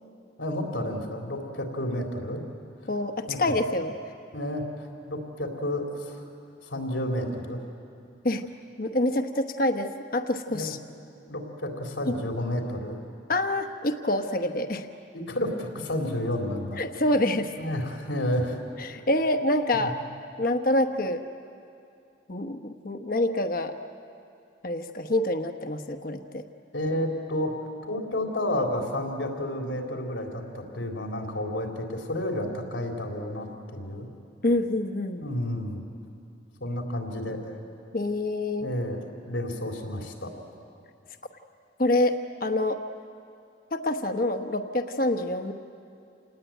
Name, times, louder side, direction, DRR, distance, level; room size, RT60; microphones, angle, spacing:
voice 1, 0.4-2.4 3.3-3.5 4.3-4.6 5.1-6.2 6.7-7.6 10.5-10.7 11.3-13.0 15.1-16.8 17.6-18.6 19.7-19.9 26.7-27.6 27.9-34.1 35.2-35.8 36.6-37.5 38.6-40.3, left 1 dB, 90° left, 1 dB, 3.9 m, -31 dB
voice 2, 2.9-4.0 8.2-8.4 8.8-10.8 12.1-12.2 13.3-14.9 16.8-17.5 18.8-20.0 20.4-21.2 22.3-23.7 24.6-26.4 34.4-35.3 37.9-38.7 41.8-42.8 43.7-45.5, left 1 dB, 50° left, 6 dB, 1.1 m, -26 dB
28.0 x 19.5 x 9.2 m, 2.5 s
head